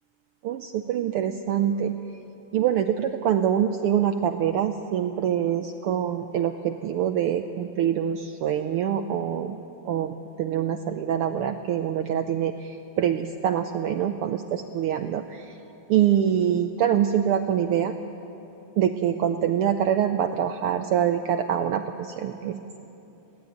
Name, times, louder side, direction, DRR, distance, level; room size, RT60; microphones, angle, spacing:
voice 1, 0.4-2.0 2.5-9.6 9.8-15.5 15.9-17.9 18.8-22.6, right 9 dB, 85° right, 7 dB, 1.2 m, -25 dB
21.5 x 16.0 x 9.4 m, 2.9 s
omnidirectional pair, 3.3 m